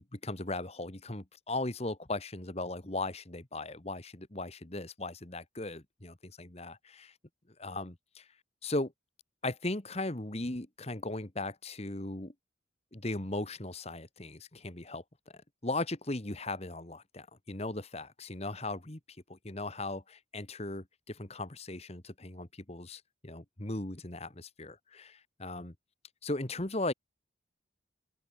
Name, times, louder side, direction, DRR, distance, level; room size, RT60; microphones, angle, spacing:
voice 1, 0.0-7.1 7.6-8.3 8.6-8.9 9.4-12.3 12.9-15.0 15.3-19.0 19.3-25.7 26.2-26.9, left 2 dB, 35° left, 1.6 m, -38 dB
open air
head